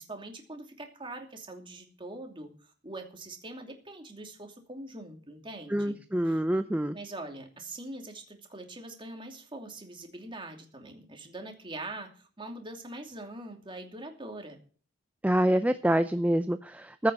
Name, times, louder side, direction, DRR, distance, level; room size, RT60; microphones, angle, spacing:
voice 1, 0.0-6.0 6.3-6.4 6.9-14.6, right 2 dB, 25° right, 3 dB, 2.7 m, -43 dB
voice 2, 5.7-7.0 15.2-17.1, right 1 dB, 10° right, 10 dB, 0.5 m, -26 dB
15.0 x 6.5 x 7.0 m, 0.41 s
head